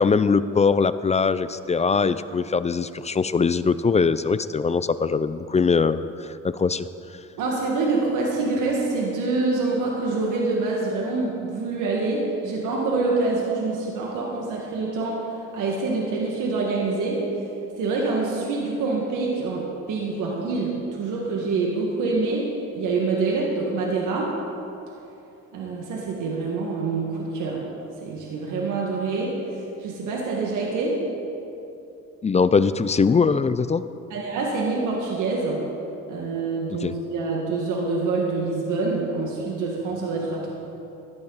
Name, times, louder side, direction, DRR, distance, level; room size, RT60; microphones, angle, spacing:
voice 1, 0.0-6.9 32.2-33.8 36.7-36.9, left 5 dB, 25° left, 14 dB, 0.4 m, -21 dB
voice 2, 7.4-15.2 15.5-17.3 17.8-24.4 25.5-27.6 28.0-29.4 29.8-31.0 34.1-35.6 36.1-40.5, right 3 dB, 85° right, -2 dB, 1.8 m, -26 dB
16.0 x 11.5 x 4.0 m, 2.8 s
cardioid pair, 90°, 30 cm